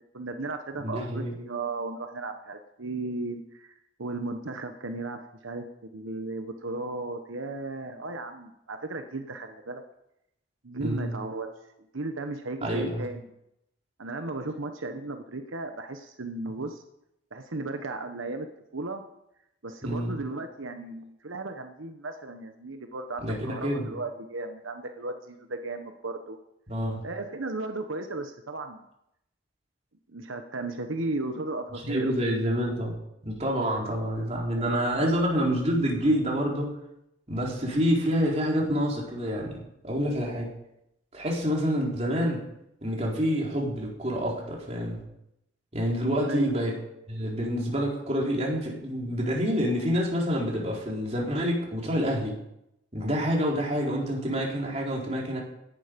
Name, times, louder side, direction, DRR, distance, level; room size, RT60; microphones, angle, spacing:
voice 1, 0.1-9.8 10.6-11.5 11.9-13.2 14.0-16.8 17.3-18.5 18.7-19.0 19.6-26.4 27.0-28.8 30.1-32.3 35.0-35.2 46.2-46.6, right 2 dB, 85° right, 6 dB, 1.2 m, -35 dB
voice 2, 0.8-1.3 10.8-11.1 12.6-13.1 19.8-20.2 23.2-23.9 26.7-27.0 31.7-33.0 33.2-36.7 37.3-39.6 39.8-40.5 41.1-42.4 42.8-45.0 45.7-46.8 47.1-52.3 52.9-55.4, equal, 30° right, -2 dB, 4.0 m, -27 dB
17.0 x 11.0 x 5.3 m, 0.82 s
head